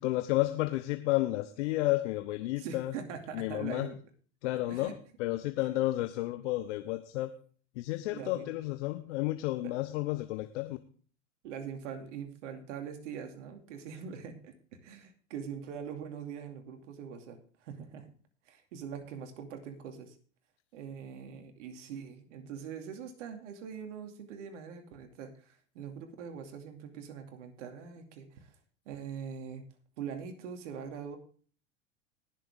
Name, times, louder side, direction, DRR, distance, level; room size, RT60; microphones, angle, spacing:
voice 1, 0.0-2.9 3.3-3.9 4.4-7.3 7.8-10.8, left 17 dB, 65° left, 10 dB, 1.0 m, -31 dB
voice 2, 2.6-4.0 4.7-5.0 8.1-8.5 9.6-9.7 11.4-18.1 18.5-20.2 20.7-28.5 28.9-29.6 30.0-31.2, right 7 dB, 70° right, 6 dB, 2.5 m, -43 dB
20.0 x 6.9 x 3.6 m, 0.43 s
hypercardioid pair, 90°, 38 cm